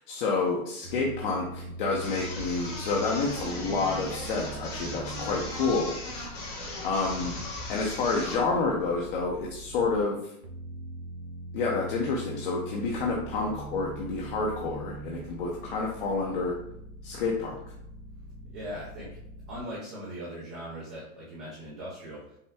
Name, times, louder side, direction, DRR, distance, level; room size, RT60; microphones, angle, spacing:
voice 1, 0.0-5.9 6.4-6.5 6.8-7.3 7.7-10.2 11.5-16.5 17.0-17.6, left 4 dB, 40° left, -2 dB, 0.7 m, -29 dB
sound 1, 0.8-10.0 10.4-19.6, right 2 dB, 90° right, 1.0 m, -42 dB
sound 2, 2.0-8.5, left 2 dB, 25° left, 0.9 m, -38 dB
voice 2, 18.4-19.1 19.5-22.4, equal, 15° right, -7 dB, 0.4 m, -40 dB
5.5 x 2.1 x 3.4 m, 0.76 s
supercardioid pair, 160°, 43 cm